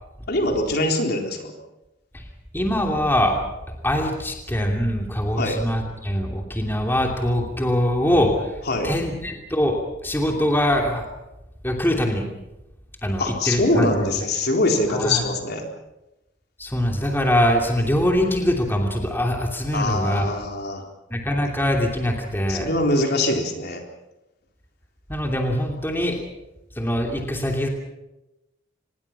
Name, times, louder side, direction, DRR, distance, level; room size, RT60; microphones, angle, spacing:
voice 1, 0.3-1.5 5.4-5.6 8.7-8.9 13.2-15.6 19.7-20.8 22.5-23.8, left 2 dB, 55° left, 2 dB, 3.9 m, -23 dB
voice 2, 2.5-3.4 3.8-8.5 8.8-11.0 11.6-12.3 13.0-14.1 14.9-15.2 16.6-20.3 21.1-22.7 25.1-26.2 26.8-27.7, equal, 10° left, 1 dB, 2.9 m, -23 dB
26.0 x 21.0 x 6.0 m, 0.96 s
head